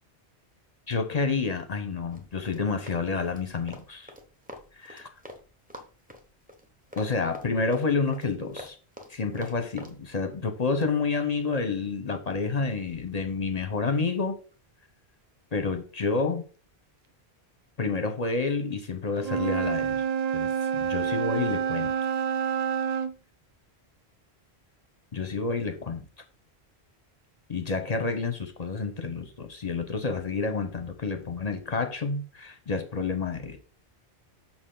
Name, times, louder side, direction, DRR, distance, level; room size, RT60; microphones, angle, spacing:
voice 1, 0.9-4.1 4.8-5.1 7.0-8.8 9.1-14.4 15.5-16.4 17.8-20.0 20.3-21.9 25.1-26.0 27.5-33.6, left 4 dB, 40° left, 8 dB, 0.8 m, -29 dB
Run, 2.1-5.4 5.7-10.0, left 1 dB, 10° right, 0.9 m, -45 dB
Wind instrument woodwind instrument, 19.2-23.1, right 7 dB, 55° right, 0.5 m, -28 dB
6.6 x 5.9 x 3.8 m, 0.39 s
omnidirectional pair, 1.1 m